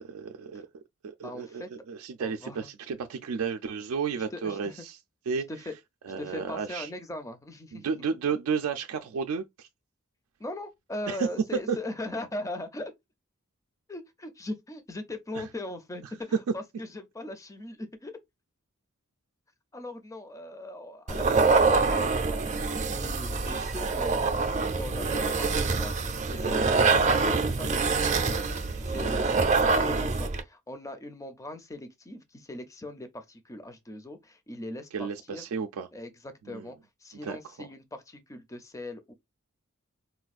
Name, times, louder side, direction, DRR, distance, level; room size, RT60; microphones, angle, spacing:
voice 1, 0.0-4.9 5.3-5.5 6.1-6.9 7.7-9.7 11.1-11.3 11.7-11.8 15.3-15.4 34.9-35.9 36.5-36.7 37.2-37.7, right 6 dB, 90° right, 0.4 m, -33 dB
voice 2, 1.2-1.7 2.2-2.7 4.2-4.9 5.3-5.7 6.2-8.1 10.4-12.9 13.9-16.0 16.5-18.1 19.7-35.4 35.9-39.1, left 1 dB, 15° left, 0.4 m, -40 dB
sound 1, 21.1-30.4, right 4 dB, 35° right, 0.5 m, -25 dB
4.2 x 2.3 x 2.4 m
head